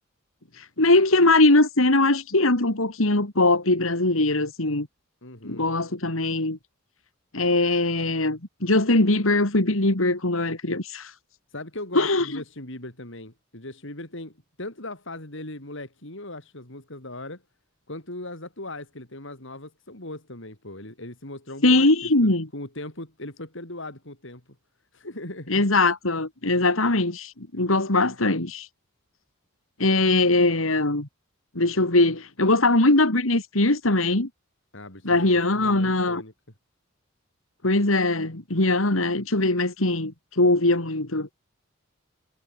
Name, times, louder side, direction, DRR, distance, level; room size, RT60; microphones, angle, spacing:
voice 1, 0.6-4.9 5.4-6.6 7.3-11.1 11.9-12.3 21.6-22.5 25.5-28.7 29.8-31.1 31.5-34.3 35.0-36.2 37.6-41.3, left 2 dB, 90° left, 3.1 m, -21 dB
voice 2, 5.2-5.6 11.5-17.4 17.9-24.4 24.9-25.7 34.7-36.3, left 2 dB, 65° left, 7.0 m, -39 dB
head